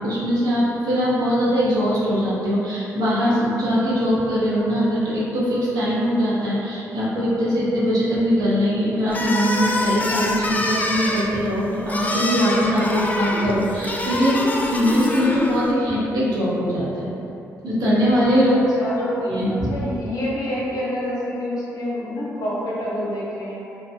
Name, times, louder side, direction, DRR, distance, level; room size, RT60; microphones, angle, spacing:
voice 1, 0.0-17.1 17.6-18.6 19.0-19.7, equal, 75° right, -8 dB, 0.8 m, -21 dB
sound 1, 9.1-15.7, left 1 dB, 25° left, 0.3 m, -25 dB
voice 2, 18.5-19.1 19.6-23.6, left 1 dB, 65° left, -7 dB, 0.7 m, -27 dB
2.7 x 2.1 x 2.6 m, 2.8 s
supercardioid pair, 55°, 7 cm